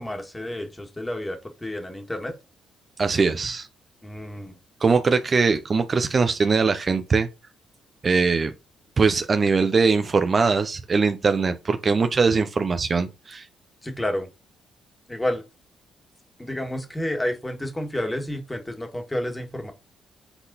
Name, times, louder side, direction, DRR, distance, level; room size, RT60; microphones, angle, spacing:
voice 1, 0.0-2.3 4.0-4.6 13.8-14.3 15.1-15.4 16.4-19.7, left 1 dB, 15° left, 1.8 m, -30 dB
voice 2, 3.0-3.7 4.8-7.3 8.0-8.5 9.0-13.5, right 4 dB, 35° right, 0.7 m, -21 dB
7.9 x 4.0 x 4.1 m
cardioid pair, 90°, 0 cm